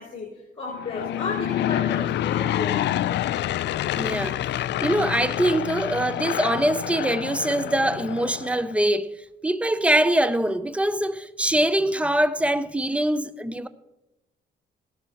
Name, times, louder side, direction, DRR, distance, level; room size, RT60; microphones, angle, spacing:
voice 1, 0.0-2.9, left 3 dB, 30° left, 4.2 m, -33 dB
Aircraft / Engine, 0.7-8.7, left 12 dB, 65° left, 0.4 m, -27 dB
voice 2, 3.9-9.1 9.4-13.7, right 1 dB, 5° right, 0.6 m, -23 dB
17.5 x 12.0 x 2.9 m
cardioid pair, 90°, 20 cm